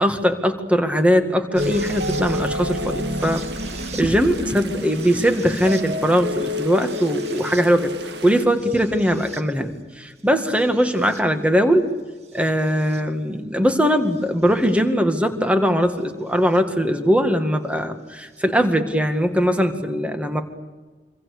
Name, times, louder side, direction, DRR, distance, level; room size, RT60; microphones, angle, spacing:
voice 1, 0.0-7.9 8.2-11.9 12.3-20.4, equal, 10° right, 7 dB, 2.0 m, -20 dB
sound 1, 1.5-9.7 10.4-11.2 12.4-13.0 14.7-14.8 16.5-16.6, right 1 dB, 40° right, 1.9 m, -34 dB
sound 2, 1.6-8.4, left 2 dB, 70° right, 1.9 m, -31 dB
26.5 x 25.5 x 6.8 m, 1.3 s
head